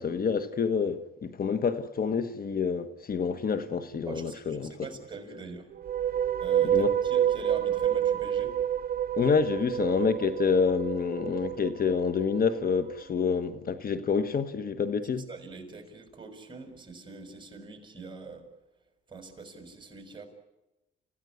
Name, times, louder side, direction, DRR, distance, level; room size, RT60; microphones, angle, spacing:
voice 1, 0.0-4.7 6.6-6.9 9.2-15.3, left 6 dB, 50° left, 1.4 m, -28 dB
voice 2, 4.1-5.7 6.4-8.6 15.3-18.5 19.1-20.3, right 4 dB, 25° right, 6.0 m, -43 dB
sound 1, 5.7-13.0, right 10 dB, 50° right, 0.8 m, -28 dB
29.5 x 15.5 x 9.6 m
cardioid pair, 90°, 20 cm